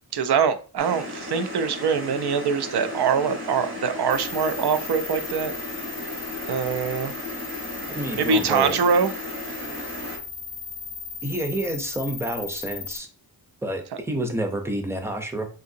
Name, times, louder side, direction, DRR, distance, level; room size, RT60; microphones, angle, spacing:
voice 1, 0.1-5.5 6.5-7.1 8.2-9.1, right 6 dB, 80° right, 10 dB, 0.5 m, -23 dB
sound 1, 0.8-10.2, left 1 dB, 30° right, 1.3 m, -35 dB
sound 2, 4.1-13.0, left 6 dB, 75° left, 0.5 m, -37 dB
voice 2, 7.9-8.8 11.2-13.1 13.6-15.5, right 1 dB, 5° right, 4 dB, 0.6 m, -29 dB
3.6 x 2.7 x 2.7 m, 0.37 s
wide cardioid pair, 80°, 39 cm